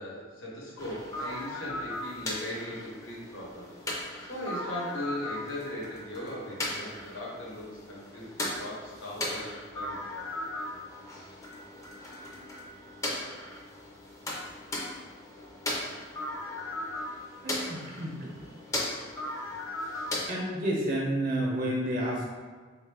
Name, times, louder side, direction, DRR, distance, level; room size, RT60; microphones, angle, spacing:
voice 1, 0.0-3.7 4.2-10.2 10.5-10.8, left 1 dB, 90° left, -5 dB, 1.1 m, -39 dB
sound 1, 0.8-20.3, left 1 dB, 15° left, 0.4 m, -37 dB
voice 2, 17.4-18.3 20.3-22.3, right 1 dB, 45° right, -2 dB, 0.5 m, -30 dB
3.5 x 2.4 x 3.3 m, 1.5 s
head